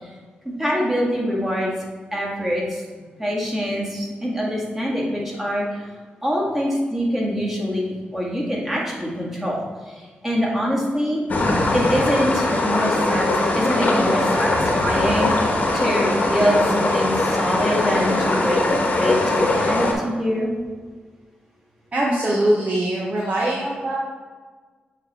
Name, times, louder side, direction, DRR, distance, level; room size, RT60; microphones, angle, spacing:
voice 1, 0.4-1.7 2.1-2.8 3.2-5.8 6.2-11.2 11.7-20.5, equal, 10° right, -4 dB, 1.8 m, -24 dB
sound 1, 11.3-19.9, left 2 dB, 50° left, 1.2 m, -21 dB
voice 2, 21.9-24.0, right 1 dB, 45° right, -4 dB, 1.0 m, -22 dB
7.9 x 3.3 x 4.2 m, 1.5 s
cardioid pair, 85°, 3 cm